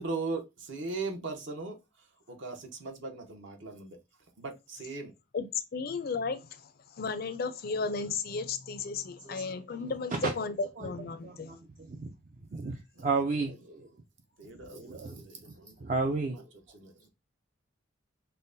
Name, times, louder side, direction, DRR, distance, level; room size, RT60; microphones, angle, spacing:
voice 1, 0.0-4.0 4.4-5.1 13.0-13.1 13.4-13.6 14.4-15.8 16.0-16.4 16.7-17.1, right 3 dB, 55° right, 0.8 m, -39 dB
voice 2, 5.7-11.5, left 4 dB, 45° left, 0.4 m, -34 dB
voice 3, 11.2-12.1 12.5-13.9 14.7-15.5 15.8-16.5, right 3 dB, 35° right, 0.3 m, -33 dB
5.4 x 2.1 x 2.6 m
head